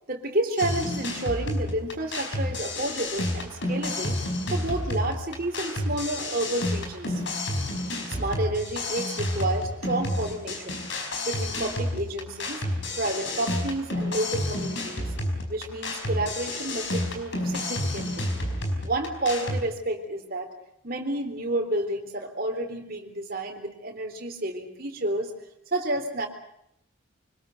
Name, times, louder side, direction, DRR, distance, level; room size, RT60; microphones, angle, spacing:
voice 1, 0.1-4.2 4.5-7.2 8.1-10.8 11.3-12.7 13.0-15.1 15.5-18.3 18.8-20.5 20.8-25.3 25.7-26.3, right 1 dB, 45° right, 4 dB, 3.7 m, -30 dB
sound 1, 0.6-19.6, left 1 dB, 60° left, 4.9 m, -30 dB
25.0 x 20.5 x 7.9 m, 0.76 s
head